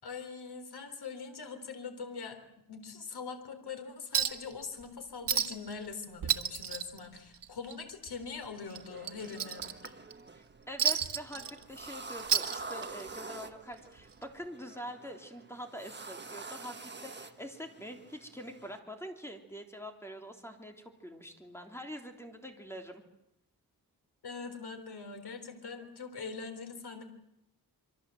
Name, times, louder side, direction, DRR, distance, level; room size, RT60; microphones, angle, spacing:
voice 1, 0.0-2.4 2.7-10.0 24.2-27.0, left 5 dB, 70° left, 6 dB, 4.0 m, -43 dB
Chink clink, 4.1-4.5 4.8-4.9 5.3-5.7 6.0-7.7 8.1-8.2 8.7-10.1 10.8-11.9 12.2-13.1 14.2-14.3, right 8 dB, 85° right, 1.7 m, -31 dB
sound 1, 8.6-18.8, right 3 dB, 25° right, 1.4 m, -47 dB
voice 2, 10.3-23.0, equal, 5° left, 3 dB, 3.3 m, -45 dB
27.5 x 24.0 x 7.8 m, 0.81 s
wide cardioid pair, 135°, 40 cm